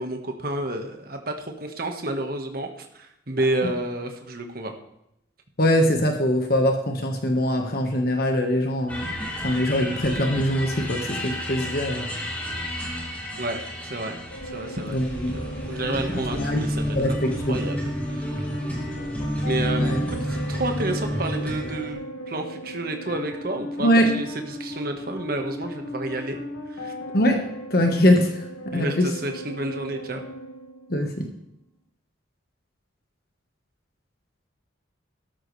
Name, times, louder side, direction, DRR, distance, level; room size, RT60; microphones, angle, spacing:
voice 1, 0.0-4.7 13.4-13.6 13.9-14.2 14.5-16.8 17.1-17.2 17.5-17.8 18.1-18.3 19.4-26.4 26.7-26.9 28.7-30.2, right 1 dB, 50° right, 4 dB, 1.5 m, -30 dB
voice 2, 5.6-9.1 9.4-12.1 14.9-15.3 16.3-16.6 16.9-17.7 19.8-20.0 23.8-24.1 27.1-28.4 28.6-29.1 30.9-31.3, equal, 50° left, 4 dB, 1.5 m, -22 dB
sound 1, 8.9-21.9, equal, 10° left, 2.5 m, -30 dB
sound 2, 14.3-31.3, left 1 dB, 85° left, 1.9 m, -37 dB
13.5 x 12.5 x 3.3 m, 0.81 s
head